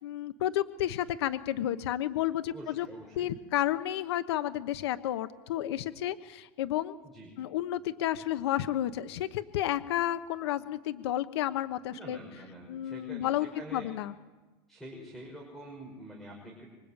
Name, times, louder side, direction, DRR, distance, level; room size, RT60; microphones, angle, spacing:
voice 1, 0.0-2.9 3.2-7.0 7.4-12.2 12.7-13.5 13.7-14.1, left 12 dB, 80° left, 11 dB, 1.1 m, -31 dB
voice 2, 2.5-3.3 7.0-7.3 11.9-13.9 14.7-16.7, right 1 dB, ahead, 1 dB, 5.6 m, -46 dB
26.0 x 24.5 x 9.0 m, 1.2 s
supercardioid pair, 155°, 13 cm